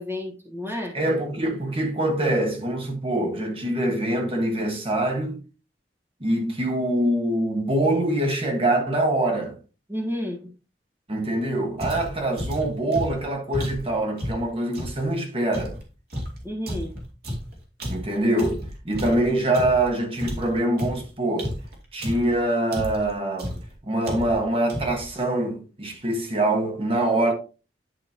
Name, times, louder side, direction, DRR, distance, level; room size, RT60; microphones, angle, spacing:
voice 1, 0.0-0.9 9.9-10.5 16.4-16.9, left 1 dB, 15° right, 1.3 m, -31 dB
voice 2, 0.9-5.4 6.2-9.5 11.1-15.8 17.9-21.5 21.9-23.6 23.9-27.3, right 1 dB, 35° right, 1.4 m, -24 dB
sound 1, 11.8-15.0 15.5-19.9 20.2-22.4 22.7-23.1 23.4-23.7 24.0-24.4 24.7-25.1, equal, 60° right, 2.4 m, -32 dB
10.5 x 5.1 x 2.9 m
head